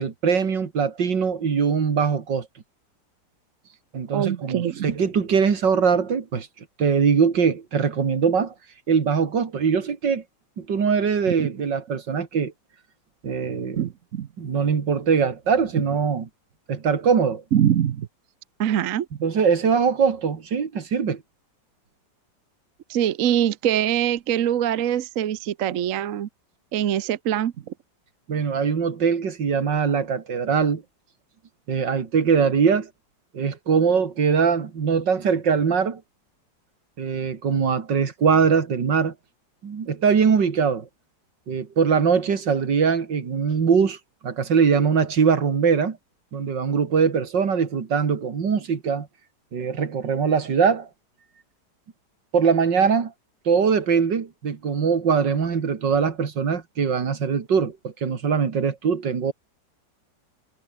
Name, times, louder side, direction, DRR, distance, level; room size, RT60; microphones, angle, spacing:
voice 1, 0.0-2.5 3.9-6.5 6.8-8.5 8.9-10.2 10.6-12.5 13.2-13.9 14.4-16.3 16.7-17.4 19.2-21.2 28.3-30.8 31.7-32.9 33.3-36.0 37.0-39.1 39.6-40.9 41.5-44.0 44.2-46.0 46.3-49.1 49.5-50.9 52.3-53.1 53.5-59.3, right 6 dB, 75° right, 2.8 m, -22 dB
voice 2, 4.1-4.9 11.3-11.4 13.8-14.3 17.5-18.1 18.6-19.1 22.9-26.3 26.7-27.7, right 10 dB, 55° right, 1.1 m, -23 dB
omnidirectional pair, 2.0 m